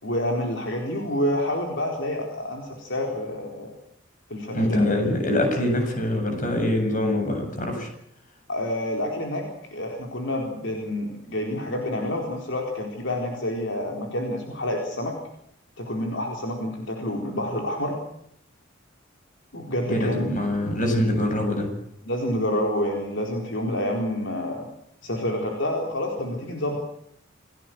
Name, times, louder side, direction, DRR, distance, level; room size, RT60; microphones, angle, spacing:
voice 1, 0.0-3.7 4.3-4.8 8.5-15.1 15.8-18.0 19.5-20.4 22.0-24.7 25.0-26.8, left 1 dB, 65° left, 1 dB, 4.3 m, -28 dB
voice 2, 4.5-7.9 19.9-21.7, left 1 dB, 45° left, 4 dB, 7.4 m, -24 dB
28.0 x 18.0 x 7.9 m, 0.73 s
head